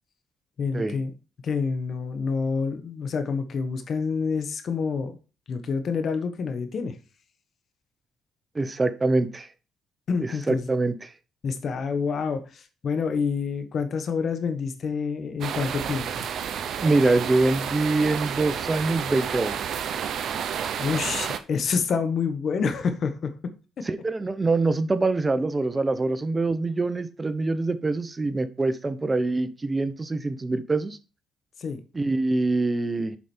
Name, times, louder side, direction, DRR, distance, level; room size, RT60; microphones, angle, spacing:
voice 1, 0.6-1.1 1.4-5.1 5.5-6.9 10.1-10.7 11.4-16.3 20.3-20.5 20.8-23.3 31.6-31.8, left 5 dB, 55° left, 9 dB, 1.2 m, -28 dB
voice 2, 8.5-9.5 10.2-11.1 16.8-19.6 23.8-31.0 31.9-33.2, right 3 dB, 25° right, 11 dB, 0.9 m, -24 dB
sound 1, 15.4-21.4, right 8 dB, 70° right, 0.8 m, -30 dB
7.2 x 5.0 x 4.4 m, 0.34 s
cardioid pair, 90°, 0 cm